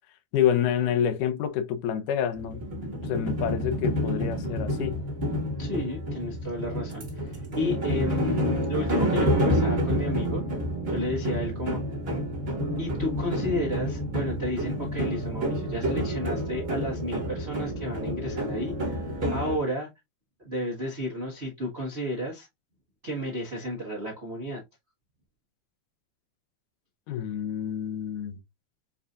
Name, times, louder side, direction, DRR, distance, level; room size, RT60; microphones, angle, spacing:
voice 1, 0.3-5.0 27.1-28.3, left 9 dB, 90° left, 2.3 m, -28 dB
sound 1, 2.3-19.6, equal, 25° right, 1.3 m, -29 dB
voice 2, 5.6-10.4 10.9-11.8 12.8-18.7 19.3-19.9 20.4-22.5 23.0-24.6, equal, 75° right, 0.6 m, -32 dB
7.0 x 2.8 x 2.4 m
omnidirectional pair, 3.5 m